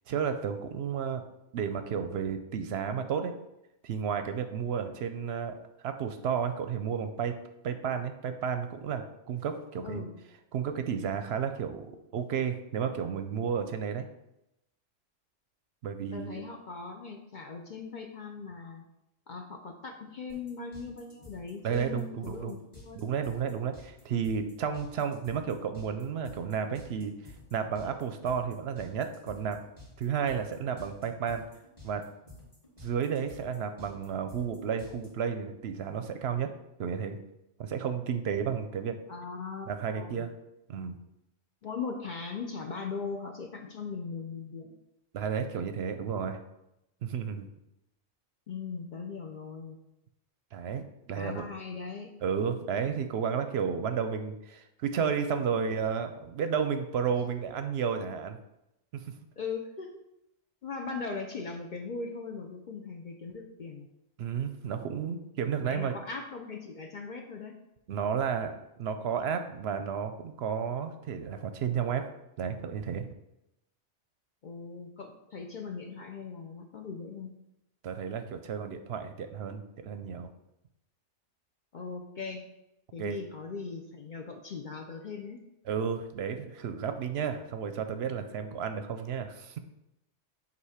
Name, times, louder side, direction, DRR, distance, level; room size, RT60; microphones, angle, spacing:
voice 1, 0.1-1.2 1.5-3.3 3.8-5.6 5.8-7.4 7.6-10.0 10.5-14.1 15.8-16.4 21.6-22.6 22.9-27.1 27.5-29.6 30.0-31.4 31.8-32.0 32.8-36.5 36.8-37.2 37.6-39.0 39.7-40.3 40.7-41.0 45.1-46.4 47.0-47.5 50.5-51.4 52.2-58.4 58.9-59.0 64.2-66.0 67.9-72.0 72.4-73.0 77.8-80.3 83.0-83.2 85.7-89.6, right 7 dB, 65° right, 8 dB, 0.7 m, -32 dB
voice 2, 16.1-18.8 19.3-23.0 39.1-40.2 41.6-44.8 48.5-49.8 51.1-52.1 59.4-59.9 60.6-63.9 65.6-67.6 74.4-77.3 81.7-82.5 82.9-85.4, left 4 dB, 55° left, 3 dB, 0.6 m, -39 dB
sound 1, 20.3-35.1, left 2 dB, 25° left, 2.1 m, -52 dB
8.0 x 2.7 x 4.8 m, 0.87 s
omnidirectional pair, 1.2 m